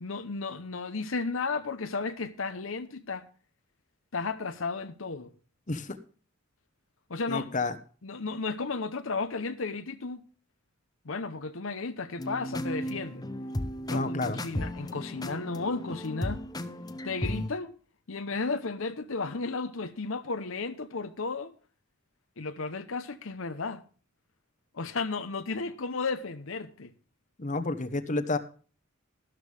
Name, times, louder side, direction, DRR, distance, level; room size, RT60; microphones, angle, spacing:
voice 1, 0.0-3.3 4.1-5.3 7.1-7.5 8.0-10.2 11.0-13.2 13.9-16.4 17.0-17.8 18.1-21.5 22.4-23.8 24.7-26.9, left 4 dB, 70° left, 0.9 m, -34 dB
voice 2, 5.7-6.0 7.3-7.8 13.9-14.4 27.4-28.4, left 3 dB, 35° left, 1.1 m, -30 dB
sound 1, 12.2-17.5, left 1 dB, 20° left, 0.9 m, -35 dB
13.0 x 13.0 x 3.4 m
head